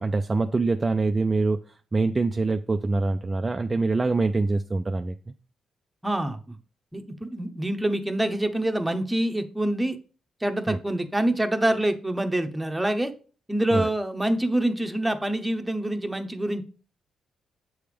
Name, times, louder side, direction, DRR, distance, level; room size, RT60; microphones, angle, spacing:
voice 1, 0.0-1.6 1.9-5.3 10.7-10.8 13.7-13.9, right 3 dB, 25° right, 0.4 m, -24 dB
voice 2, 6.0-6.6 6.9-10.0 10.4-13.1 13.5-16.6, right 1 dB, 10° right, 0.8 m, -26 dB
7.8 x 3.4 x 5.0 m
cardioid pair, 90°, 0 cm